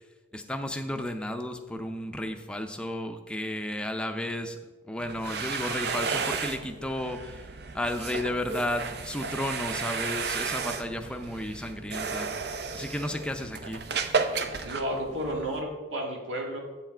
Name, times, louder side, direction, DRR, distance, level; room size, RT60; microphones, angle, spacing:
voice 1, 0.3-4.6 4.9-7.4 7.7-12.3 12.7-13.8, left 1 dB, 5° left, 5 dB, 0.5 m, -33 dB
sound 1, 5.0-15.6, right 5 dB, 55° right, 0.6 m, -33 dB
voice 2, 14.6-16.6, equal, 85° right, 0 dB, 1.9 m, -32 dB
8.2 x 7.1 x 4.5 m, 1.2 s
head